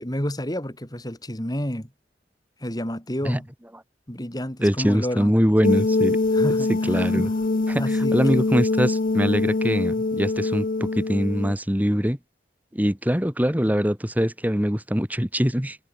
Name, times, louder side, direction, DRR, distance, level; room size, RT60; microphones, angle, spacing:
voice 1, 0.0-1.9 2.6-3.5 4.1-5.3 6.3-7.3 7.8-8.5, equal, 20° left, 4.2 m, -30 dB
voice 2, 4.6-6.2 6.7-7.3 7.7-12.2 12.7-15.8, equal, 10° right, 2.4 m, -23 dB
sound 1, 5.6-11.5, left 3 dB, 50° left, 0.7 m, -23 dB
head